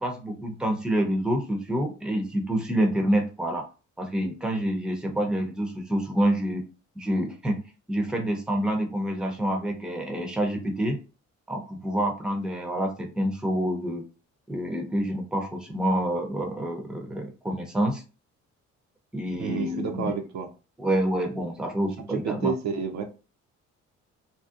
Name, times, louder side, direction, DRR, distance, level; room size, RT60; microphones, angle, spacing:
voice 1, 0.0-3.7 4.0-6.6 7.0-7.6 7.9-11.0 11.5-14.0 14.5-18.0 19.1-20.1 20.8-22.5, right 1 dB, 5° right, 3 dB, 0.5 m, -27 dB
voice 2, 19.4-20.5 22.0-23.1, right 6 dB, 65° right, 6 dB, 0.5 m, -30 dB
2.7 x 2.1 x 2.3 m, 0.32 s
cardioid pair, 90°, 30 cm